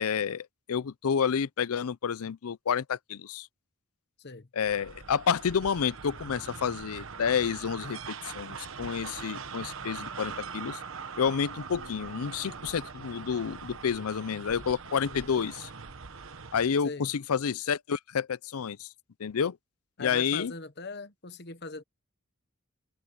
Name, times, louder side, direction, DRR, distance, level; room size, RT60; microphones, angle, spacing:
voice 1, 0.0-3.5 4.5-10.8 11.2-15.7 16.5-18.9 19.2-19.6 20.0-20.5, left 7 dB, 85° left, 0.5 m, -29 dB
sound 1, 4.6-16.7, right 5 dB, 65° right, 1.1 m, -42 dB
voice 2, 15.1-15.5 16.8-17.1 20.0-21.8, left 3 dB, 50° left, 1.1 m, -41 dB
head